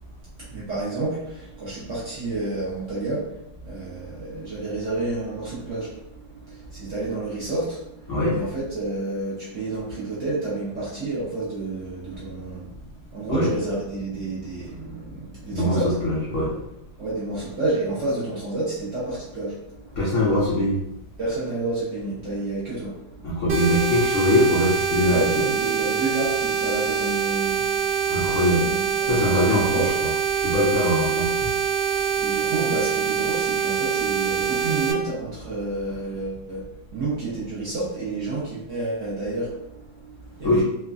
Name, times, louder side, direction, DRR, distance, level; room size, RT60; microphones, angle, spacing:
voice 1, 0.4-12.7 13.1-16.0 17.0-20.0 21.2-23.2 25.1-27.6 28.6-29.9 32.2-36.6 36.9-40.6, right 2 dB, 60° right, -8 dB, 0.8 m, -30 dB
voice 2, 8.1-8.4 13.3-13.5 15.5-16.5 20.0-20.8 23.2-25.2 28.1-28.7 29.0-29.8 30.3-31.5 40.4-40.6, left 1 dB, 80° left, -6 dB, 0.6 m, -22 dB
sound 1, 23.5-34.9, right 7 dB, 85° right, 1.3 m, -24 dB
3.1 x 2.1 x 2.4 m, 0.86 s
omnidirectional pair, 2.0 m